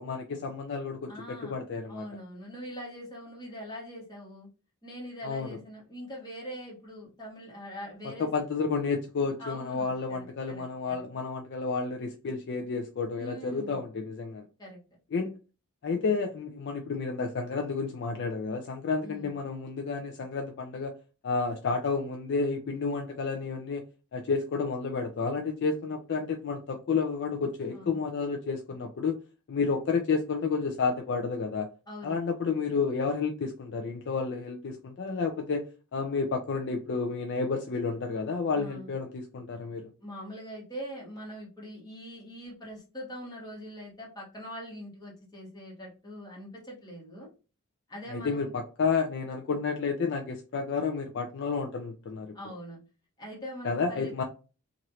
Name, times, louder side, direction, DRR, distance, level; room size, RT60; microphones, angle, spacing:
voice 1, 0.0-2.0 5.2-5.6 8.2-14.4 15.1-15.4 15.8-20.9 21.2-23.8 24.1-29.2 29.5-31.7 32.0-35.7 35.9-39.9 48.1-52.3 53.6-54.2, left 4 dB, 50° left, 4 dB, 0.4 m, -31 dB
voice 2, 1.1-1.5 1.9-4.5 4.8-8.3 9.4-11.0 13.2-13.8 14.6-14.8 19.0-19.3 27.7-28.0 31.9-32.2 38.5-38.9 40.0-47.3 47.9-48.5 52.3-52.8 53.2-54.2, equal, 20° left, -4 dB, 1.4 m, -42 dB
3.0 x 2.5 x 2.8 m, 0.33 s
head